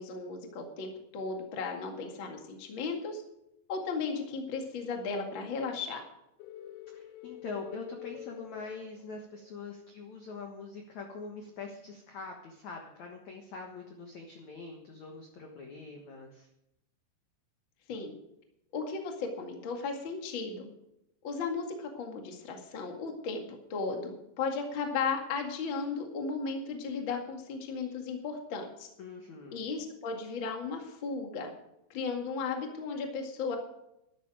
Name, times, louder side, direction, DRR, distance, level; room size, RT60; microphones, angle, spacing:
voice 1, 0.0-3.2 3.7-6.0 17.9-18.1 18.7-20.7 21.2-23.4 23.7-28.9 29.5-31.5 31.9-33.6, left 4 dB, 45° left, 3 dB, 1.7 m, -35 dB
sound 1, 6.4-9.6, left 13 dB, 85° left, 3.4 m, -47 dB
voice 2, 6.9-16.5 29.0-29.6, left 4 dB, 60° left, 2 dB, 1.9 m, -43 dB
12.5 x 12.0 x 5.0 m, 0.83 s
omnidirectional pair, 5.4 m